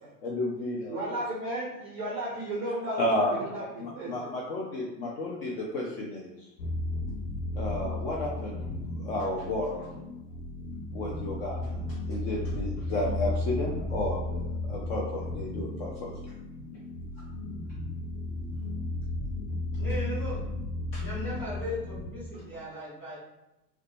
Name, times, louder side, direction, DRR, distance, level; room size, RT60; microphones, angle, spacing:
voice 1, 0.2-1.2 3.0-3.3 3.8-6.5 7.6-9.9 10.9-16.1 20.9-21.0, left 1 dB, 40° left, -3 dB, 0.5 m, -32 dB
voice 2, 0.9-4.3, right 1 dB, 25° right, -6 dB, 0.4 m, -34 dB
sound 1, 6.6-22.5, left 2 dB, 85° left, 0.6 m, -34 dB
voice 3, 19.8-20.4 21.0-23.1, equal, 5° left, -8 dB, 1.3 m, -37 dB
2.5 x 2.2 x 2.5 m, 0.94 s
figure-of-eight pair, 85°, 49 cm